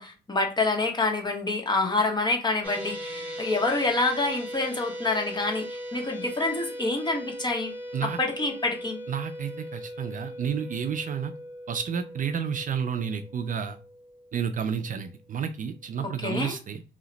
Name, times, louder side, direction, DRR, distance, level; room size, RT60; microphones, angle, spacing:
voice 1, 0.0-7.7 8.0-9.0 16.0-16.6, left 3 dB, 20° left, 2 dB, 0.9 m, -27 dB
sound 1, 2.6-15.0, equal, 10° right, 1.2 m, -39 dB
voice 2, 9.1-11.3 11.7-13.8 14.3-16.8, right 7 dB, 45° right, 9 dB, 0.4 m, -31 dB
2.8 x 2.1 x 3.8 m, 0.32 s
cardioid pair, 90°, 20 cm